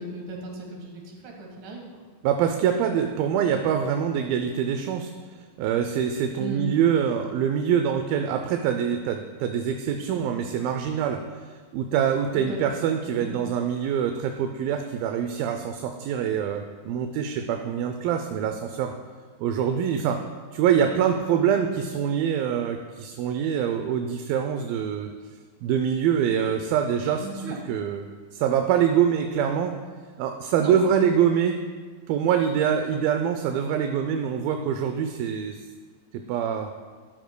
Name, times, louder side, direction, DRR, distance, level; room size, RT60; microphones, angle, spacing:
voice 1, 0.0-1.8 6.4-6.7 12.4-12.6 13.2-13.3 27.2-27.6 30.6-30.8, right 3 dB, 65° right, 0 dB, 3.0 m, -36 dB
voice 2, 2.2-5.1 5.6-11.2 11.7-18.9 19.4-20.2 20.5-25.1 25.6-28.0 28.3-29.8 30.2-31.6 32.1-35.6 36.1-36.7, right 8 dB, 85° right, 6 dB, 2.4 m, -24 dB
13.0 x 12.0 x 2.2 m, 1.5 s
omnidirectional pair, 4.2 m